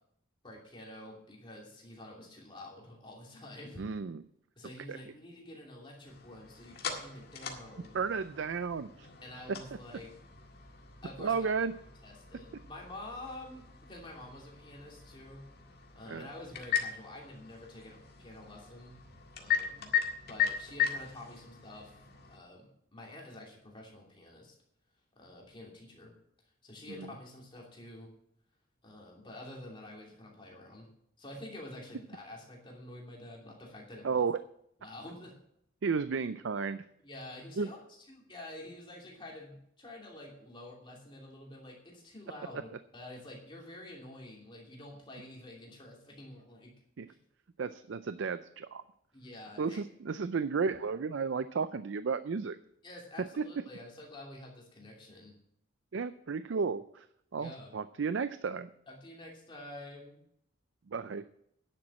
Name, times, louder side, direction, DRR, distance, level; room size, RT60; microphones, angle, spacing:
voice 1, 0.4-3.8 4.6-7.9 9.2-10.1 11.0-11.4 12.0-15.5 15.9-19.0 19.4-19.9 20.3-22.0 22.3-24.5 25.2-26.1 26.6-28.1 28.8-30.9 31.2-34.2 34.8-35.3 37.0-46.7 49.1-49.8 52.8-55.3 57.4-57.7 58.9-60.2, left 1 dB, 25° left, -2 dB, 2.9 m, -48 dB
voice 2, 3.8-4.2 4.9-5.0 7.9-9.1 11.2-11.7 16.1-16.3 27.0-27.1 34.0-34.4 35.8-36.8 37.6-37.7 47.0-47.1 47.6-48.8 49.6-52.6 55.9-57.1 57.3-58.7 60.9-61.2, right 5 dB, 65° right, 13 dB, 0.4 m, -33 dB
sound 1, 6.0-22.4, left 8 dB, 50° left, 1.8 m, -38 dB
10.5 x 7.7 x 7.3 m, 0.72 s
head